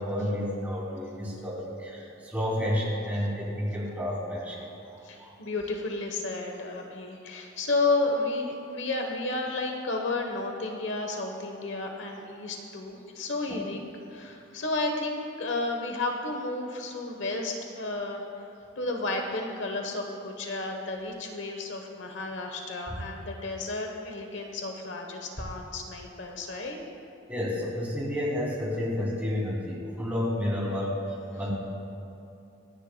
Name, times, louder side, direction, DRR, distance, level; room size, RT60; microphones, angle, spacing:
voice 1, 0.0-4.7 4.9-5.4 27.3-31.0 31.4-31.5, left 1 dB, 10° right, -6 dB, 2.8 m, -30 dB
voice 2, 5.0-13.8 14.1-18.2 18.8-26.8, left 2 dB, 65° left, 2 dB, 1.1 m, -32 dB
26.0 x 10.0 x 2.3 m, 2.8 s
head